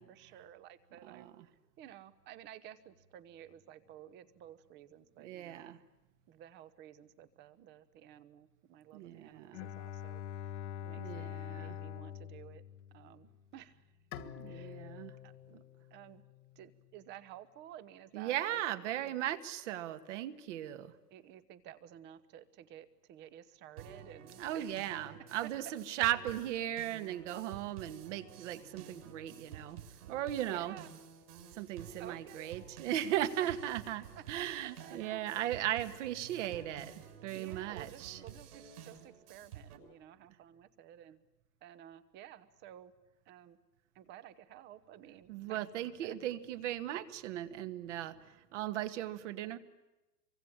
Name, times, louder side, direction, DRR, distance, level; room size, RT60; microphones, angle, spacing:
voice 1, 0.0-1.3 1.8-5.7 6.3-10.6 10.8-12.6 12.9-13.8 14.5-14.8 15.2-15.6 15.9-16.2 16.5-19.2 21.1-25.1 25.4-26.1 30.4-30.9 32.0-32.5 33.4-33.5 34.2-35.2 35.9-36.0 37.3-41.2 41.6-42.9 43.3-43.6 43.9-45.6 46.0-46.2, right 11 dB, 20° right, 16 dB, 1.1 m, -53 dB
voice 2, 1.0-1.3 5.2-5.8 8.9-9.6 11.0-11.8 14.2-15.2 18.1-20.9 24.4-29.8 30.1-30.8 31.5-38.2 45.3-49.6, right 12 dB, 45° right, 11 dB, 1.8 m, -37 dB
Bowed string instrument, 9.5-13.5, left 9 dB, 45° left, 1.2 m, -44 dB
Bowed string instrument 2, 14.1-17.3, left 10 dB, 60° left, 2.2 m, -50 dB
sound 1, 23.8-39.8, right 8 dB, 60° right, 6.7 m, -51 dB
27.0 x 24.5 x 8.8 m, 1.0 s
hypercardioid pair, 155°, 50 cm